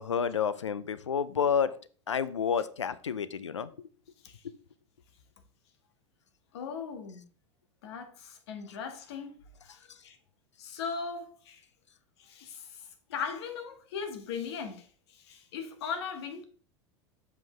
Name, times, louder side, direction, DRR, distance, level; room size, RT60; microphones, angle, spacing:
voice 1, 0.0-1.8 2.1-3.7, left 7 dB, 85° left, 0.4 m, -29 dB
voice 2, 6.5-7.2 7.8-10.2 10.6-11.6 12.2-16.4, left 6 dB, 65° left, 1.4 m, -39 dB
7.6 x 5.6 x 3.2 m
figure-of-eight pair, 85°, 15 cm